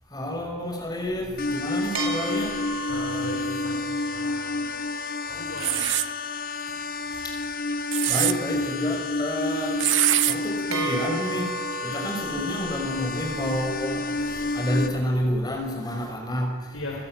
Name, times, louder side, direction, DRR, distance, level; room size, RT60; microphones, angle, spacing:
voice 1, 0.1-3.6 6.7-6.8 7.1-7.4 8.1-10.0 10.3-16.8, equal, 20° left, 1 dB, 5.5 m, -30 dB
sound 1, 1.4-14.9, left 3 dB, 45° left, 1.8 m, -30 dB
sound 2, 1.9-5.6 10.7-15.1, right 5 dB, 80° right, 5.0 m, -36 dB
voice 2, 2.9-4.8 5.3-5.9 16.7-17.0, left 1 dB, 75° left, -1 dB, 4.0 m, -37 dB
sound 3, 5.6-6.1 7.7-8.3 9.8-10.4, right 14 dB, 60° right, 0.8 m, -23 dB
29.0 x 15.0 x 9.1 m, 1.4 s
head